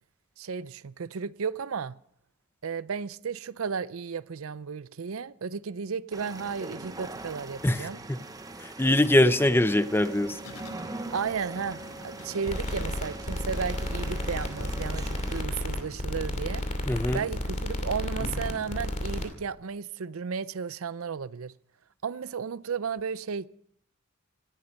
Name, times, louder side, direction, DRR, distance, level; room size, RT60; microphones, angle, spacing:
voice 1, 0.4-1.9 2.6-8.0 11.1-16.6 17.1-21.5 22.0-23.5, right 6 dB, 70° right, 0.5 m, -34 dB
sound 1, 6.1-15.4, right 2 dB, 15° right, 0.9 m, -42 dB
voice 2, 7.6-8.2 8.6-10.4 16.9-17.2, left 1 dB, 10° left, 0.6 m, -23 dB
sound 2, 10.4-19.3, left 1 dB, 80° left, 1.8 m, -46 dB
sound 3, 12.5-19.3, left 1 dB, 35° left, 2.7 m, -32 dB
18.5 x 14.5 x 5.3 m
head